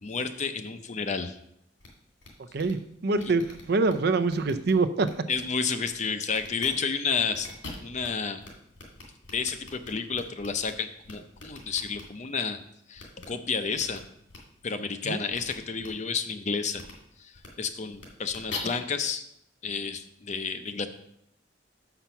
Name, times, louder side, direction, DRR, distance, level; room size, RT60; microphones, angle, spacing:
voice 1, 0.0-1.4 3.3-3.4 5.3-7.5 7.8-8.4 9.3-12.6 12.9-14.0 14.6-16.8 17.2-19.2 19.6-20.9, left 5 dB, 40° left, 9 dB, 0.5 m, -31 dB
sound 1, 1.8-1.9 2.2-2.3 2.5-2.7 3.2-3.9 4.3-4.7 5.0-5.4 5.8-5.9 6.3-6.7 7.1-8.1 8.4-8.5 8.7-10.7 11.0-12.0 13.0-13.2 13.8-14.0 14.3-14.4 15.3-15.5 15.8-15.9 16.7-16.9 17.3-17.5 17.9-18.6, left 4 dB, 85° left, 2.3 m, -43 dB
voice 2, 2.5-5.1 15.0-15.2, right 3 dB, 55° right, 11 dB, 0.5 m, -25 dB
5.9 x 5.7 x 6.9 m, 0.75 s
head